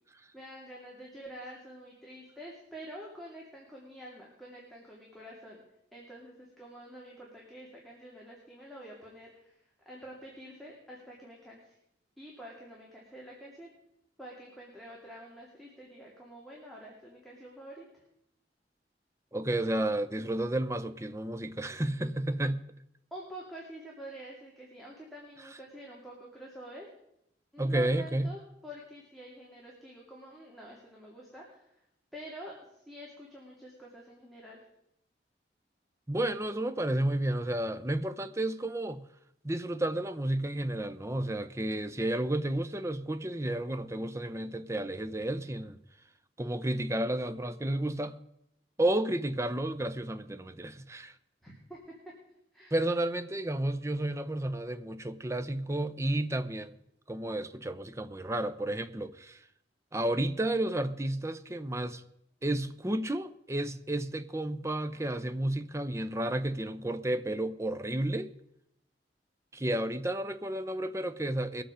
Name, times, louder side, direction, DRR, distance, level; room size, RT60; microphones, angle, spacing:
voice 1, 0.3-5.6 5.9-11.8 12.2-13.7 14.2-18.0 23.1-26.9 27.5-31.8 32.1-34.6 51.4-52.1 52.5-52.7, equal, ahead, 2.5 m, -47 dB
voice 2, 19.3-22.6 27.6-28.3 36.1-39.0 39.4-45.8 46.4-48.1 48.8-51.2 52.7-56.7 57.1-59.4 59.9-62.0 62.4-68.3 69.5-71.6, right 1 dB, 15° right, 0.7 m, -32 dB
21.0 x 8.0 x 5.0 m
head